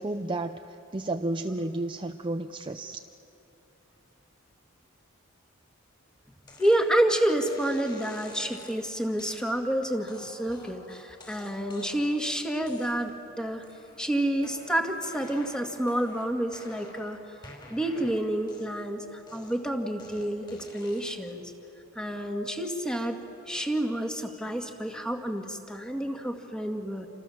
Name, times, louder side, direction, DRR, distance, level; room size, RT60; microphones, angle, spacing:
voice 1, 0.0-3.0, right 2 dB, 25° right, 7 dB, 0.6 m, -32 dB
sound 1, 6.5-6.8 7.4-8.8 9.2-9.5 10.1-12.2 12.6-13.2 13.6-14.1 14.4-17.1 17.4-18.9 19.3-21.3, left 2 dB, 20° left, 4.5 m, -50 dB
voice 2, 6.6-13.6 14.0-17.2 17.7-21.5 22.0-23.2 23.5-27.1, right 1 dB, 5° left, 3 dB, 1.9 m, -29 dB
29.5 x 26.5 x 7.1 m, 3.0 s
head